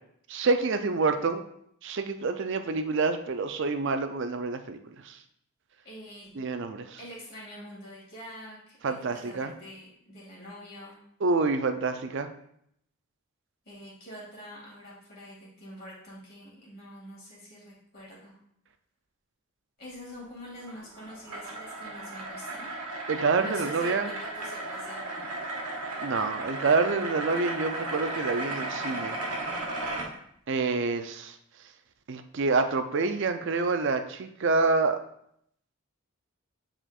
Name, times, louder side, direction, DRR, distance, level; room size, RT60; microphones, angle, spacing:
voice 1, 0.3-1.4 1.8-5.2 6.4-7.0 8.8-9.5 11.2-12.3 23.1-24.1 26.0-29.2 30.5-31.4 32.1-35.0, right 3 dB, 55° right, 8 dB, 0.4 m, -27 dB
voice 2, 5.8-6.3 7.0-11.0 13.7-18.4 19.8-22.7 23.4-25.3, equal, 45° left, -6 dB, 2.3 m, -45 dB
sound 1, 20.6-30.1, right 2 dB, 85° right, 1.3 m, -35 dB
8.9 x 4.4 x 2.4 m, 0.71 s
head